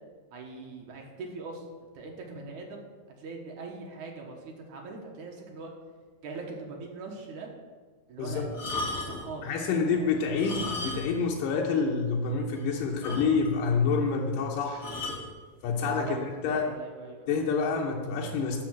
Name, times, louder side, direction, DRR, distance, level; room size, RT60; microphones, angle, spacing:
voice 1, 0.3-1.7 1.9-2.9 3.2-5.7 6.2-7.5 8.1-8.5 8.8-9.4 9.9-10.4 15.8-16.2 16.5-17.3, right 3 dB, 60° right, 1 dB, 2.4 m, -42 dB
voice 2, 8.2-8.6 9.4-14.9 15.6-16.2 16.4-16.7 17.3-18.6, left 5 dB, 75° left, -1 dB, 2.3 m, -27 dB
sound 1, 8.5-9.3 10.3-11.3 11.5-11.7 12.2-12.3 12.5-12.6 13.0-13.7 14.8-15.3 16.1-16.4, left 2 dB, 30° left, 1.2 m, -35 dB
12.5 x 4.9 x 7.2 m, 1.4 s
omnidirectional pair, 4.4 m